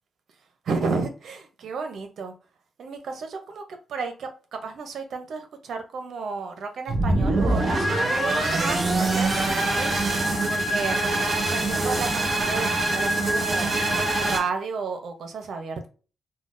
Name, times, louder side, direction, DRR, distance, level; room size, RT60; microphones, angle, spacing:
voice 1, 0.7-2.3 2.8-3.6 3.9-9.9 10.5-13.7 14.2-15.9, right 4 dB, 75° right, 0.6 m, -32 dB
sound 1, 6.9-14.4, right 2 dB, 45° right, 0.9 m, -24 dB
3.7 x 2.2 x 2.5 m
cardioid pair, 115°, 0 cm